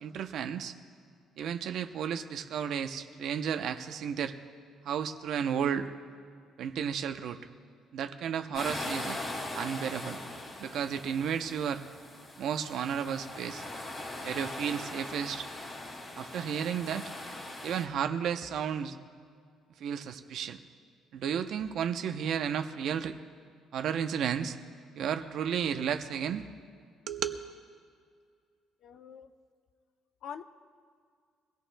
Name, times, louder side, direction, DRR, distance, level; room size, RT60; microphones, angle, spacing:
voice 1, 0.0-0.7 1.4-4.4 4.8-5.9 6.6-7.4 7.9-9.2 9.6-10.2 10.6-11.8 12.4-13.6 14.2-15.5 16.2-17.1 17.6-19.0 19.8-20.6 21.1-23.2 23.7-24.6 24.9-26.4 27.1-27.4, right 8 dB, 60° right, 8 dB, 0.7 m, -33 dB
sound 1, 8.5-17.9, left 2 dB, 30° left, 2.2 m, -40 dB
voice 2, 28.8-29.3 30.2-30.4, left 8 dB, 60° left, 9 dB, 0.6 m, -44 dB
24.0 x 17.0 x 2.2 m, 2.2 s
cardioid pair, 155°, 0 cm